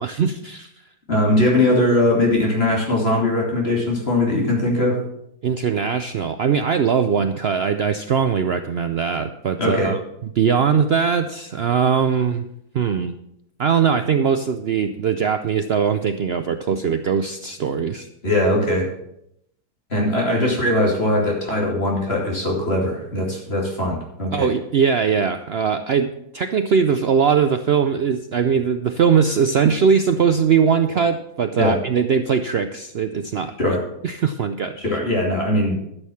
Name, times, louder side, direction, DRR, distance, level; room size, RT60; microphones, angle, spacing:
voice 1, 0.0-0.7 5.4-10.0 10.4-12.5 12.7-13.1 13.6-18.1 24.3-33.8 34.0-34.8, right 6 dB, 80° right, 9 dB, 0.5 m, -20 dB
voice 2, 1.1-5.0 9.6-9.9 18.2-18.9 19.9-24.5 31.6-31.8 33.6-33.8 34.8-35.8, left 1 dB, 35° left, -1 dB, 2.9 m, -20 dB
12.0 x 6.5 x 7.0 m, 0.77 s
omnidirectional pair, 1.8 m